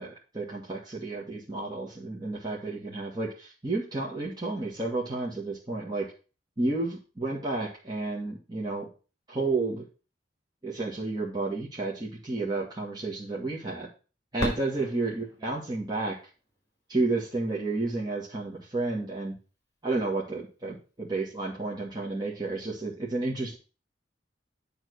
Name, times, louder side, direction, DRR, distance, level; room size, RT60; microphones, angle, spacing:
voice 1, 0.0-6.1 6.6-8.9 9.3-9.8 10.6-13.9 14.3-16.2 16.9-19.4 19.8-23.6, right 3 dB, 20° right, -5 dB, 1.6 m, -31 dB
Fireworks, 14.4-17.1 17.8-17.9 18.6-19.1 21.0-21.1, equal, 15° left, 4.2 m, -38 dB
9.0 x 3.6 x 6.2 m, 0.34 s
head